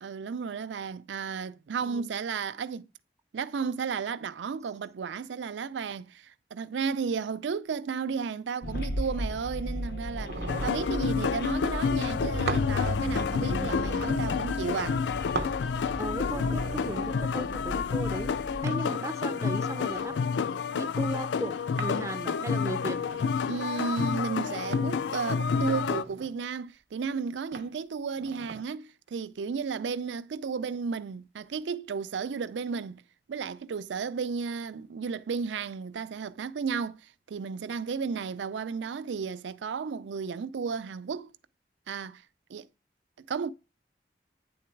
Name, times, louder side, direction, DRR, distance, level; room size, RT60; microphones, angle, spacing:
voice 1, 0.0-2.9 3.3-15.0 23.5-33.0 33.3-41.3 41.9-42.2 42.5-42.7 43.2-43.5, right 5 dB, 90° right, 0.4 m, -33 dB
sound 1, 8.6-18.6, left 1 dB, 60° left, 0.7 m, -35 dB
Glass On Bar, 10.2-11.0 12.5-12.7 13.1-14.4 15.3-15.6 16.1-17.3 18.7-18.8 19.4-20.3 21.8-22.0 22.6-23.6 24.7-24.9 25.6-26.4 27.5-27.7 28.1-28.6, right 3 dB, 70° right, 0.7 m, -39 dB
sound 2, 10.5-26.0, left 6 dB, 85° left, 0.3 m, -29 dB
voice 2, 16.0-18.3 18.6-20.1 20.7-23.0 25.1-25.2, right 2 dB, 15° right, 0.3 m, -36 dB
9.4 x 3.8 x 4.5 m
head